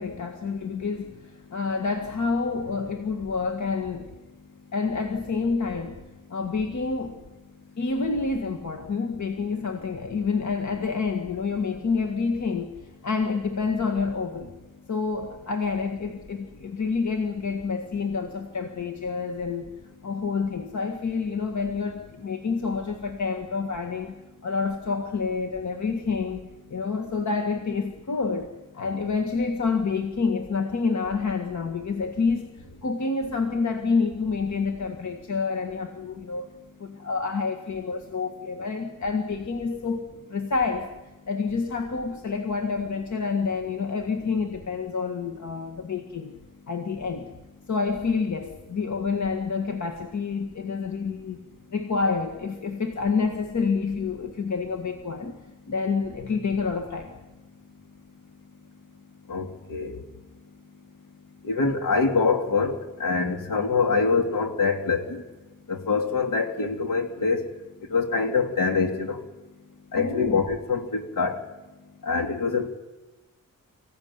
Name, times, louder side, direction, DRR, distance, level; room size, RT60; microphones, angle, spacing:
voice 1, 0.0-4.1 4.7-6.0 6.3-7.2 7.8-12.7 13.0-14.5 14.9-19.7 20.0-26.4 26.7-28.5 28.7-36.5 36.8-40.9 41.3-46.3 46.7-47.3 47.7-51.4 51.7-55.4 55.7-57.1 70.0-70.4, left 4 dB, 60° left, 4 dB, 1.8 m, -28 dB
voice 2, 59.3-59.9 61.4-65.2 65.7-67.5 67.9-69.2 69.9-71.4 72.0-72.7, left 4 dB, 75° left, 5 dB, 3.0 m, -25 dB
25.0 x 16.0 x 9.6 m, 1.1 s
wide cardioid pair, 175°, 33 cm